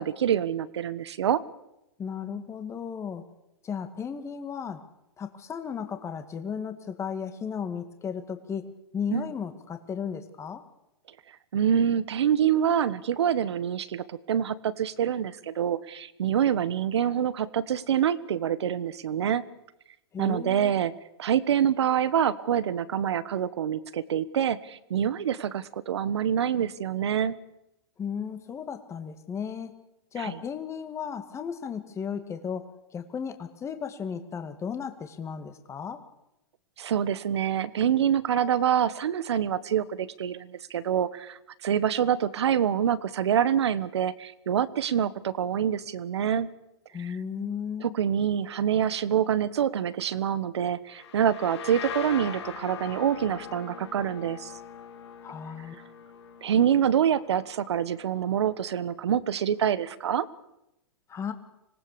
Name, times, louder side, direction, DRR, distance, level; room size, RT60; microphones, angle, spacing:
voice 1, 0.0-1.4 9.1-9.3 11.5-19.4 20.2-20.9 21.2-27.4 30.2-30.4 36.8-46.5 47.0-47.1 47.8-54.5 56.4-60.2, right 9 dB, 75° right, 16 dB, 1.3 m, -26 dB
voice 2, 2.0-3.2 3.6-4.8 5.2-10.6 20.1-20.8 28.0-29.8 30.1-32.7 32.9-36.0 46.9-47.9 55.2-55.8 61.1-61.3, left 7 dB, 20° left, 8 dB, 2.1 m, -35 dB
sound 1, 50.9-58.5, left 7 dB, 75° left, 4.2 m, -41 dB
25.5 x 18.5 x 6.9 m, 0.88 s
hypercardioid pair, 120°, 14 cm